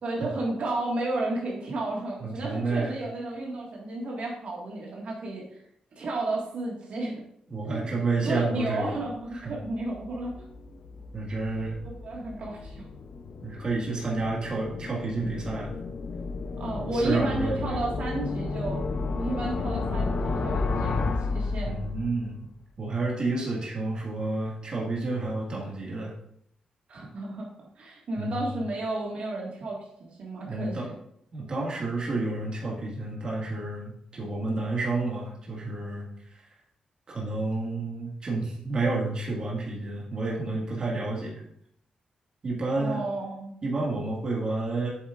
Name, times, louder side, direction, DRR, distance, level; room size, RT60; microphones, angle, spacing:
voice 1, 0.0-5.4 5.9-7.1 7.6-7.9 8.2-10.3 12.0-12.8 16.6-18.9 19.1-21.8 26.9-27.4 27.8-30.9 42.8-43.5, right 2 dB, 60° right, -2 dB, 1.7 m, -32 dB
voice 2, 2.2-2.9 7.5-9.0 9.3-9.5 11.1-11.7 13.4-15.8 16.9-17.8 21.6-22.5 22.8-26.1 28.2-28.6 30.5-30.9 31.3-36.5 37.1-41.4 42.4-43.0 43.6-44.9, right 3 dB, 40° right, -3 dB, 1.8 m, -30 dB
sound 1, 9.3-22.2, left 3 dB, 50° left, 0.6 m, -33 dB
8.2 x 7.2 x 2.5 m, 0.70 s
wide cardioid pair, 155°, 2 cm